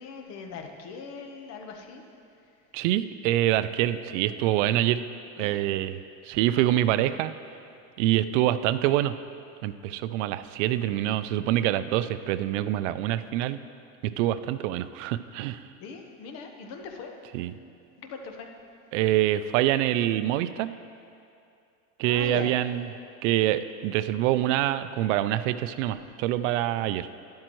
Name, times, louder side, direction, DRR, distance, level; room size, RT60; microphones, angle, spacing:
voice 1, 0.0-2.0 5.4-5.6 15.8-17.1 18.0-18.5 22.0-22.6 25.9-26.1, left 5 dB, 45° left, 4 dB, 1.1 m, -40 dB
voice 2, 2.7-5.0 5.4-6.0 6.2-7.3 8.0-9.1 9.6-13.6 14.0-15.6 17.3-17.5 18.9-20.7 22.0-22.8 23.2-27.1, right 13 dB, 75° right, 13 dB, 0.5 m, -25 dB
12.0 x 11.5 x 3.1 m, 2.5 s
cardioid pair, 160°, 37 cm